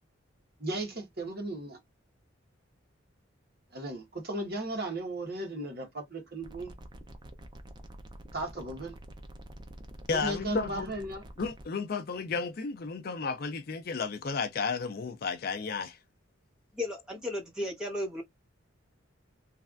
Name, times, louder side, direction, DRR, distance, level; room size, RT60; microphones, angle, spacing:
voice 1, 0.6-1.8 3.7-6.7 8.3-8.9 10.1-11.2, right 2 dB, 50° right, 1.3 m, -36 dB
sound 1, 6.4-11.6, right 1 dB, 20° right, 0.5 m, -47 dB
voice 2, 10.1-10.9 11.4-16.0, left 5 dB, 45° left, 0.4 m, -33 dB
voice 3, 16.7-18.2, left 1 dB, 5° right, 1.0 m, -34 dB
3.2 x 2.4 x 2.4 m
head